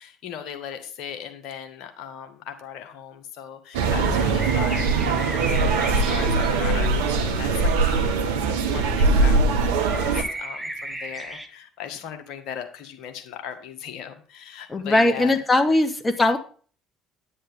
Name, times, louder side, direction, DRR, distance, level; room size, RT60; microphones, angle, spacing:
voice 1, 0.0-15.8, left 9 dB, 65° left, 6 dB, 1.7 m, -38 dB
sound 1, 3.7-10.2, right 3 dB, 80° right, 1.1 m, -21 dB
sound 2, 4.1-7.1 9.9-11.5, right 2 dB, 10° right, 2.0 m, -35 dB
voice 2, 14.7-16.4, left 2 dB, 20° left, 7 dB, 1.6 m, -20 dB
9.9 x 9.3 x 3.6 m, 0.41 s
hypercardioid pair, 55°, 0 cm